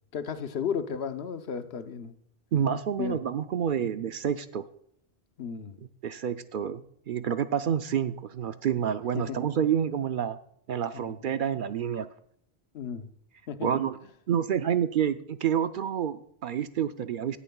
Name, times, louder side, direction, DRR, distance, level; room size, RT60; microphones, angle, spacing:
voice 1, 0.1-2.1 3.0-3.2 3.8-3.9 5.4-5.8 9.1-9.5 10.9-11.2 12.7-13.1 13.5-13.7, left 7 dB, 75° left, 9 dB, 1.0 m, -34 dB
voice 2, 2.5-4.6 6.0-6.8 7.1-10.4 10.7-12.1 13.6-14.0 14.3-17.4, right 8 dB, 60° right, 11 dB, 0.6 m, -28 dB
16.5 x 10.5 x 2.3 m, 0.66 s
omnidirectional pair, 1.1 m